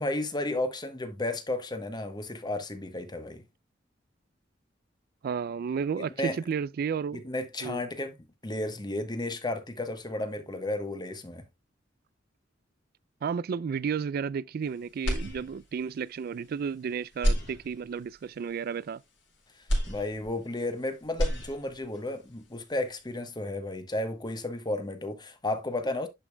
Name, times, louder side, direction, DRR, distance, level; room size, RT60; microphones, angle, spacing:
voice 1, 0.0-3.4 6.0-6.4 7.1-8.2 8.4-11.5 19.9-26.1, left 2 dB, 25° left, 1.1 m, -33 dB
voice 2, 5.2-7.2 7.6-7.8 13.2-19.0, right 6 dB, 50° right, 0.3 m, -32 dB
sound 1, 15.0-15.9 16.4-16.5 17.1-18.2 19.7-20.8 21.0-22.0, equal, 80° left, 4.5 m, -30 dB
11.0 x 5.2 x 2.2 m
head